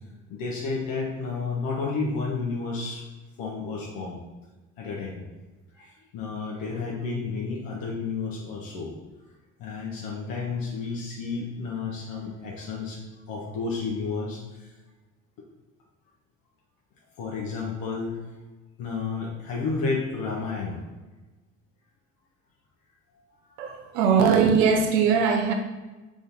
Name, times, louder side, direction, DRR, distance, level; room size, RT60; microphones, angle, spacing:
voice 1, 0.3-3.0 3.4-4.2 4.8-5.2 5.7-8.9 9.6-13.0 13.3-14.7 17.2-18.2 18.8-20.8, left 4 dB, 60° left, -2 dB, 0.9 m, -31 dB
voice 2, 23.6-25.5, right 6 dB, 70° right, 4 dB, 0.8 m, -20 dB
3.9 x 3.7 x 3.5 m, 1.2 s
hypercardioid pair, 55°, 38 cm